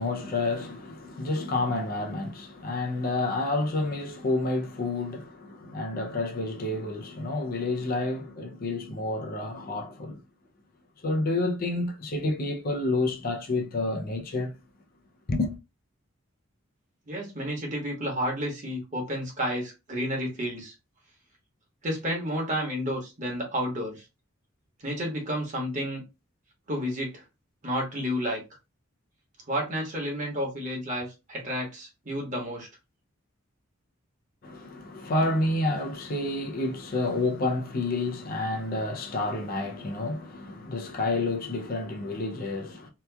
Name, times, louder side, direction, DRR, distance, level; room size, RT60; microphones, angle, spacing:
voice 1, 0.0-10.2 11.0-14.5 15.3-15.6 34.4-42.9, left 2 dB, 45° left, 0.5 m, -29 dB
voice 2, 17.1-20.7 21.8-24.0 24.8-26.0 26.7-27.2 27.6-28.4 29.5-32.7, equal, 40° right, 1.1 m, -31 dB
2.8 x 2.3 x 2.2 m
head